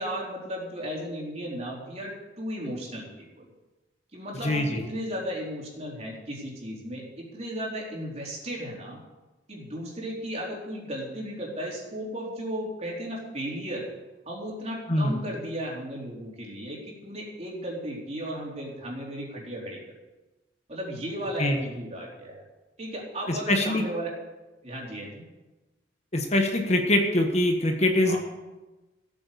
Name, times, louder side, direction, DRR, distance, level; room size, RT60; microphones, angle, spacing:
voice 1, 0.0-3.1 3.4-3.5 4.1-9.0 9.5-13.9 14.3-19.8 20.7-22.4 22.8-24.2 24.6-25.2 28.0-28.2, equal, 35° right, -3 dB, 3.9 m, -35 dB
voice 2, 4.4-4.8 14.9-15.2 21.4-21.6 23.3-23.8 26.1-28.2, left 1 dB, 35° left, 3 dB, 1.4 m, -23 dB
15.5 x 9.0 x 6.9 m, 1.1 s
head